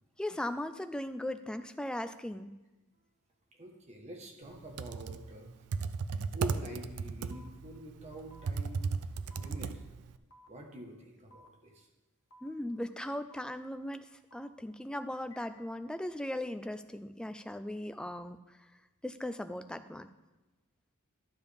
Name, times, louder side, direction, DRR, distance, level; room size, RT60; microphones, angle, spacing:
voice 1, 0.2-2.6 12.4-14.1 14.3-18.4 19.0-20.1, left 1 dB, 5° left, 10 dB, 0.3 m, -38 dB
voice 2, 3.6-5.5 6.3-8.8 9.4-9.7 10.5-11.9, right 1 dB, 30° right, 2 dB, 1.2 m, -46 dB
Computer keyboard, 4.6-10.2, right 5 dB, 90° right, 0.4 m, -36 dB
sound 1, 7.3-7.5 8.3-8.5 9.3-9.5 10.3-10.5 11.3-11.5 12.3-12.5 13.3-13.5 14.3-14.5 15.3-15.5, left 1 dB, 80° left, 1.0 m, -57 dB
12.0 x 7.2 x 3.4 m, 1.1 s
head